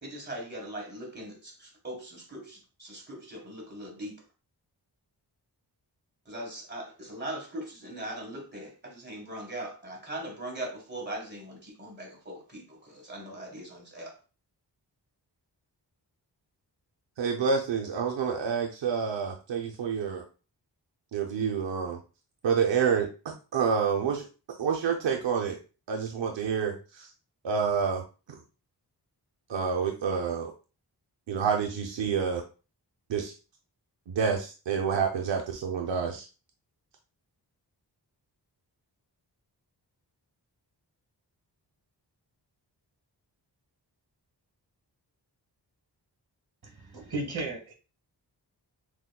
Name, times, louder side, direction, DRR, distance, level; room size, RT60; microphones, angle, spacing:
voice 1, 0.0-4.2 6.2-14.2, right 1 dB, 25° right, 1.6 m, -40 dB
voice 2, 17.2-20.2 21.1-22.0 22.4-23.1 23.5-24.2 24.6-25.6 25.9-27.1 27.4-28.0 29.5-30.5 31.3-32.4 33.1-33.3 34.1-36.2, right 6 dB, 85° right, 0.6 m, -28 dB
voice 3, 46.6-47.7, right 2 dB, 60° right, 1.4 m, -35 dB
6.1 x 2.1 x 2.3 m
wide cardioid pair, 65°, 43 cm